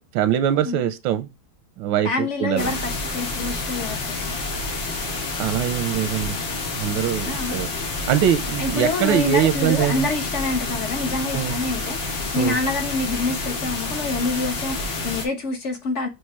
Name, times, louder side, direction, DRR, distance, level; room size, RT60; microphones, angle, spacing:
voice 1, 0.1-1.3 1.8-2.7 5.4-6.3 6.8-7.7 8.1-10.1 11.3-11.6 12.4-12.6, right 10 dB, 85° right, 1.4 m, -22 dB
voice 2, 2.0-4.2 7.2-7.6 8.6-16.1, left 3 dB, 50° left, 0.9 m, -27 dB
sound 1, 2.6-15.3, left 3 dB, 85° left, 2.3 m, -29 dB
6.5 x 3.4 x 4.7 m
omnidirectional pair, 2.0 m